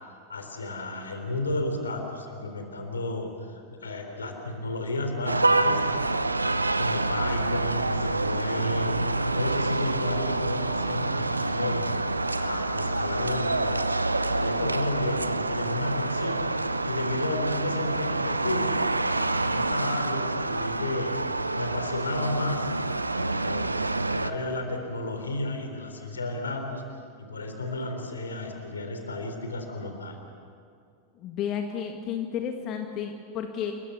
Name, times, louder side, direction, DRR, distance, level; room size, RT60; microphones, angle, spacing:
voice 1, 0.3-6.1 6.8-8.9 9.3-11.9 12.4-14.0 14.4-16.4 16.8-18.7 19.4-21.1 21.6-22.7 23.2-23.8 24.1-26.8 27.2-30.2, left 2 dB, 75° left, 5 dB, 3.8 m, -32 dB
sound 1, 5.3-24.3, right 2 dB, 80° right, 0.8 m, -27 dB
voice 2, 31.2-33.7, left 8 dB, 35° left, 4 dB, 1.8 m, -32 dB
30.0 x 22.0 x 7.0 m, 2.4 s
figure-of-eight pair, 90°, 0 cm